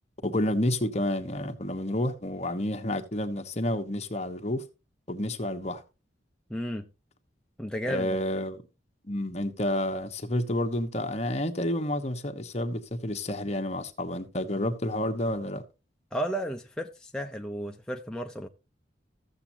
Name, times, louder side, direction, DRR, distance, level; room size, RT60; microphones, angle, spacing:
voice 1, 0.2-4.6 5.1-5.8 7.8-8.6 9.0-15.6, left 1 dB, 40° left, 1.3 m, -30 dB
voice 2, 6.5-6.9 7.6-8.2 16.1-18.5, equal, 5° left, 0.6 m, -33 dB
15.0 x 7.3 x 2.8 m
head